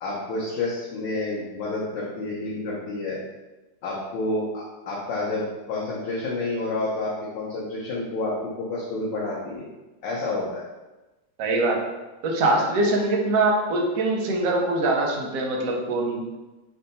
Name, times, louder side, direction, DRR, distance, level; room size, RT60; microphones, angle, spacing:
voice 1, 0.0-3.2 3.8-9.7 10.0-10.6, left 2 dB, 75° left, -6 dB, 1.4 m, -29 dB
voice 2, 11.4-11.8 12.2-16.2, right 2 dB, 65° right, 0 dB, 0.9 m, -23 dB
3.7 x 2.2 x 3.9 m, 1.1 s
omnidirectional pair, 2.0 m